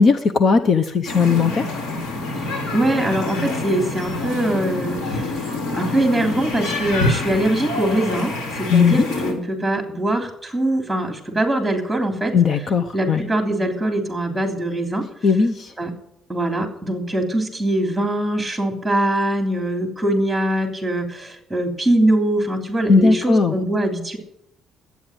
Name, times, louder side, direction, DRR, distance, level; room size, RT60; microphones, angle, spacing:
voice 1, 0.0-1.6 8.7-9.1 12.3-13.2 15.2-15.7 22.9-23.5, left 5 dB, 45° left, 9 dB, 0.9 m, -17 dB
sound 1, 1.1-9.3, left 2 dB, 80° left, 4.4 m, -26 dB
voice 2, 2.7-5.3 5.8-12.3 12.9-15.0 15.8-15.9 16.3-24.2, right 1 dB, 5° right, 3 dB, 3.3 m, -22 dB
12.0 x 9.2 x 8.9 m, 0.75 s
cardioid pair, 120°, 0 cm